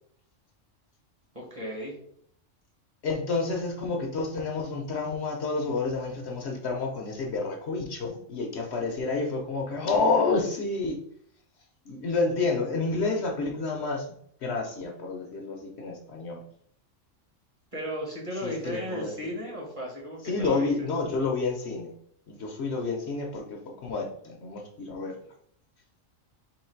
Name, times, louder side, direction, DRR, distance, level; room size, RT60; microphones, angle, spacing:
voice 1, 1.3-2.0 17.7-20.7, equal, 30° right, -2 dB, 1.2 m, -35 dB
voice 2, 3.0-11.0 11.9-16.4 18.4-19.1 20.2-21.9 22.3-25.2, left 3 dB, 65° left, 2 dB, 0.9 m, -29 dB
3.9 x 3.0 x 4.4 m, 0.65 s
omnidirectional pair, 1.3 m